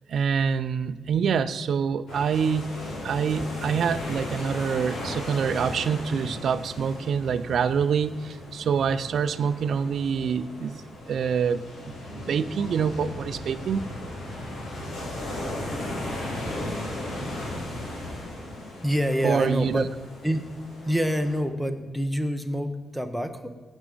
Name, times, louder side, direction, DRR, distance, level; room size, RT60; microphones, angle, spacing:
voice 1, 0.1-2.7 3.0-13.9 19.2-19.9, right 6 dB, 70° right, 13 dB, 0.5 m, -26 dB
sound 1, 2.1-21.4, left 1 dB, 85° left, 3.4 m, -36 dB
voice 2, 18.8-19.9 20.2-20.4 20.8-23.5, equal, ahead, 5 dB, 0.9 m, -26 dB
16.5 x 6.4 x 5.1 m, 1.4 s
wide cardioid pair, 135°, 0 cm